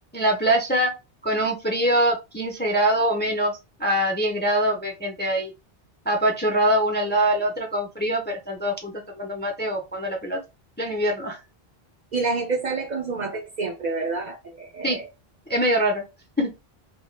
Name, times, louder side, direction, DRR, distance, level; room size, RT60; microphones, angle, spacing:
voice 1, 0.1-0.9 1.2-5.5 6.1-10.4 10.8-11.4 14.8-15.0 15.5-16.0 16.4-16.5, right 1 dB, 15° left, 0.4 m, -23 dB
voice 2, 12.1-15.1, right 4 dB, 55° right, 0.6 m, -28 dB
2.7 x 2.2 x 3.1 m
omnidirectional pair, 1.0 m